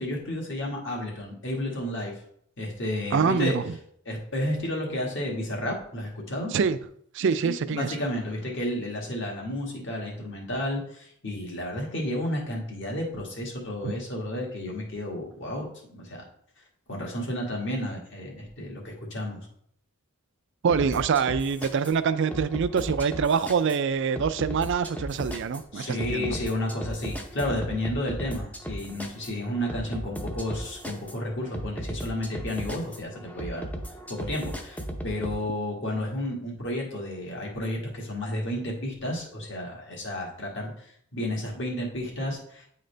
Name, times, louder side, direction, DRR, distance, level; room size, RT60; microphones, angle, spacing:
voice 1, 0.0-2.1 2.6-3.6 4.1-6.5 7.4-16.2 16.9-19.5 25.7-33.6 34.1-40.9 41.1-42.7, left 1 dB, 55° left, -1 dB, 1.7 m, -32 dB
voice 2, 3.1-3.6 6.5-6.8 7.1-7.9 13.8-13.9 20.6-26.4, right 6 dB, 55° right, 13 dB, 0.4 m, -25 dB
sound 1, 20.7-35.4, equal, 5° left, 0.6 m, -37 dB
9.3 x 3.9 x 3.3 m, 0.65 s
head